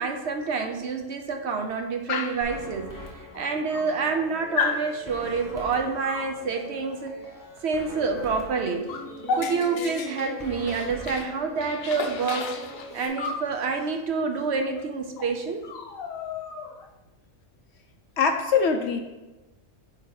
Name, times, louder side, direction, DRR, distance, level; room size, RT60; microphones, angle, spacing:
voice 1, 0.0-2.9 3.3-7.2 7.6-8.9 9.4-12.5 12.9-15.7, right 4 dB, 65° right, 5 dB, 0.8 m, -28 dB
Dog, 2.1-2.5 3.3-3.4 3.7-4.2 4.6-4.9 6.0-6.3 8.1-8.3 8.6-11.3 11.6-13.5 14.7-14.9 15.2-15.3 15.6-16.9, left 5 dB, 80° left, 1.1 m, -32 dB
sound 1, 2.4-13.1, equal, 20° left, 0.7 m, -42 dB
voice 2, 18.2-19.0, left 5 dB, 65° left, 6 dB, 0.8 m, -22 dB
8.5 x 2.9 x 4.6 m, 1.1 s
omnidirectional pair, 1.4 m